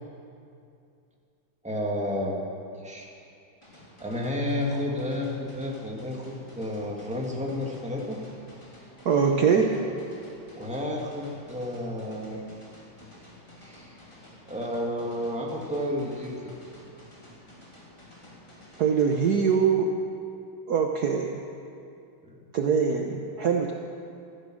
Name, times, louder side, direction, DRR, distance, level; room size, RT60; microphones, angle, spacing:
voice 1, 1.6-2.4 2.7-3.1 4.0-8.2 10.6-12.4 13.6-14.0 14.5-16.5 22.2-22.4, left 1 dB, 5° right, -2 dB, 2.0 m, -31 dB
sound 1, 3.6-19.6, left 1 dB, 15° left, 3.0 m, -51 dB
voice 2, 9.0-9.8 18.8-19.9 20.7-21.4 22.5-23.7, right 6 dB, 60° right, 2 dB, 1.3 m, -23 dB
16.0 x 14.0 x 6.2 m, 2.5 s
omnidirectional pair, 2.2 m